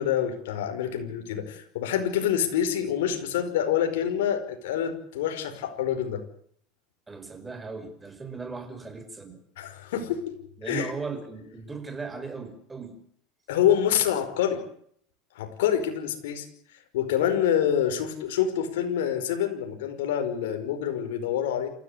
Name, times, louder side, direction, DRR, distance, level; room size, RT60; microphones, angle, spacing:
voice 1, 0.0-6.2 9.6-10.3 10.7-10.9 13.5-14.6 15.4-16.5 16.9-21.7, left 9 dB, 85° left, 6 dB, 5.4 m, -26 dB
voice 2, 7.1-9.4 10.6-13.0, right 4 dB, 15° right, 9 dB, 5.0 m, -37 dB
28.0 x 15.5 x 8.3 m, 0.63 s
supercardioid pair, 125°, 0 cm